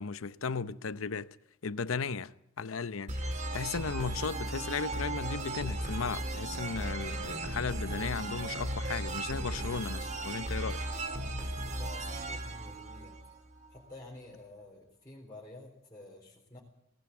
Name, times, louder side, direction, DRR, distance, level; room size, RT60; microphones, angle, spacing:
voice 1, 0.0-1.4 1.6-10.8, left 5 dB, 80° left, 0.7 m, -36 dB
sound 1, 3.1-13.7, right 1 dB, 35° right, 2.2 m, -36 dB
voice 2, 11.8-13.2 13.7-16.6, left 2 dB, 20° left, 4.2 m, -50 dB
19.0 x 18.0 x 8.5 m
head